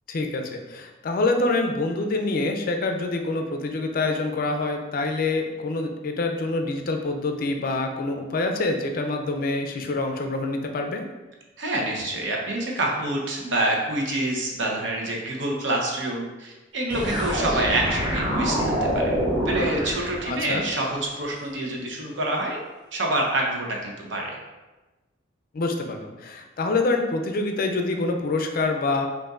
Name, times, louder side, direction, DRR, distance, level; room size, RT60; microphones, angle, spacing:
voice 1, 0.1-11.1 20.3-20.7 25.5-29.1, left 3 dB, 50° left, 4 dB, 0.4 m, -26 dB
voice 2, 11.6-19.1 19.4-22.6 22.9-24.4, right 1 dB, 75° right, -1 dB, 0.8 m, -27 dB
sound 1, 16.9-20.8, equal, 25° right, 0.7 m, -26 dB
5.3 x 2.6 x 2.4 m, 1.1 s
head